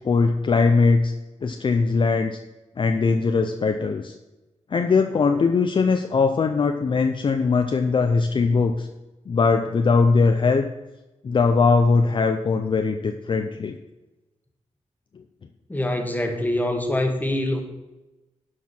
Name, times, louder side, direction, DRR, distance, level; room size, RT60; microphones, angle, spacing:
voice 1, 0.0-1.1 1.4-2.4 2.8-4.1 4.7-8.9 9.3-10.7 11.2-13.8 15.2-15.3, left 4 dB, 45° left, 6 dB, 0.6 m, -20 dB
voice 2, 15.7-17.6, left 1 dB, 15° left, 4 dB, 1.4 m, -24 dB
11.0 x 4.8 x 6.0 m, 1.1 s
wide cardioid pair, 120°, 12 cm